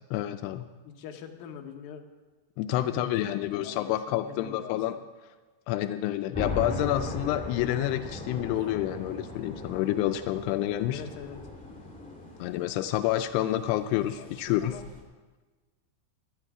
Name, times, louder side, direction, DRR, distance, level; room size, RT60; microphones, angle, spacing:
voice 1, 0.1-0.7 2.6-5.0 5.7-11.0 12.4-14.8, left 13 dB, 90° left, 9 dB, 2.3 m, -28 dB
voice 2, 0.8-2.0 2.8-4.8 10.9-11.4 14.2-14.8, left 7 dB, 70° left, 3 dB, 2.5 m, -44 dB
sound 1, 6.3-15.0, left 2 dB, 5° left, 0.7 m, -39 dB
17.5 x 12.0 x 4.9 m, 1.3 s
omnidirectional pair, 5.3 m